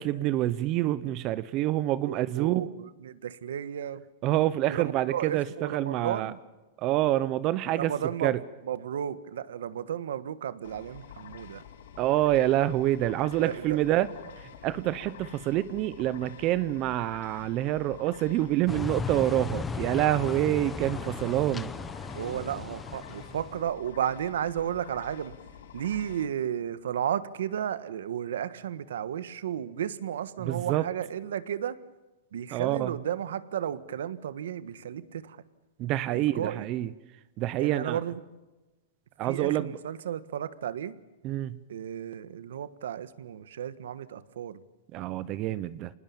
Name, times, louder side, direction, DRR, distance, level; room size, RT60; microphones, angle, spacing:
voice 1, 0.0-2.7 4.2-6.3 6.8-7.9 8.2-8.4 12.0-14.1 14.4-21.7 30.4-30.8 32.5-32.9 35.8-36.9 37.4-38.0 39.2-39.7 41.2-41.6 44.9-45.9, right 14 dB, 35° right, 17 dB, 0.8 m, -27 dB
voice 2, 2.0-4.0 4.7-6.4 7.7-11.6 13.4-13.8 22.1-25.3 25.7-31.8 32.3-35.4 36.1-36.7 37.6-38.2 39.2-41.0 41.7-44.6, right 9 dB, 80° right, 15 dB, 1.4 m, -33 dB
sound 1, 10.6-26.3, left 9 dB, 70° left, 2.8 m, -48 dB
sound 2, 18.7-23.6, left 4 dB, 10° left, 0.9 m, -36 dB
Wind, 19.2-26.8, left 8 dB, 50° left, 3.8 m, -58 dB
26.5 x 20.0 x 7.2 m, 1.1 s
supercardioid pair, 155°, 0 cm